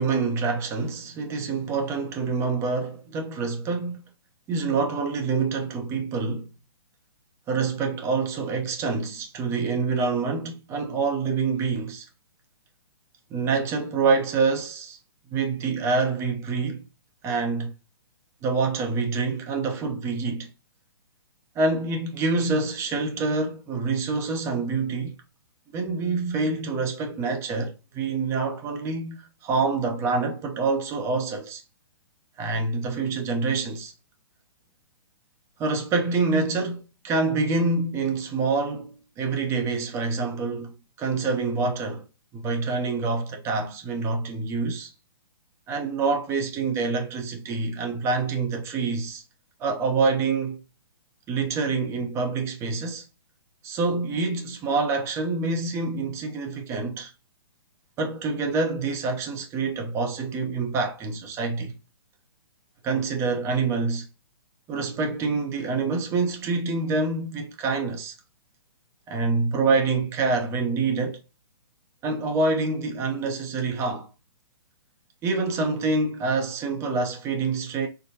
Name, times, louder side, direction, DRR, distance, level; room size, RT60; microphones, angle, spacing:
voice 1, 0.0-4.1 4.5-6.5 7.5-12.1 13.3-15.0 15.3-16.9 17.2-17.7 18.4-20.5 21.5-25.1 25.7-31.6 32.4-33.9 35.6-42.0 42.3-44.9 45.7-49.2 49.6-50.6 51.3-53.0 53.6-57.1 58.0-61.8 62.8-64.1 64.7-68.1 69.1-71.2 72.0-74.1 75.2-77.9, right 4 dB, 20° right, 0.7 m, -26 dB
4.5 x 2.2 x 2.7 m
hypercardioid pair, 130°, 13 cm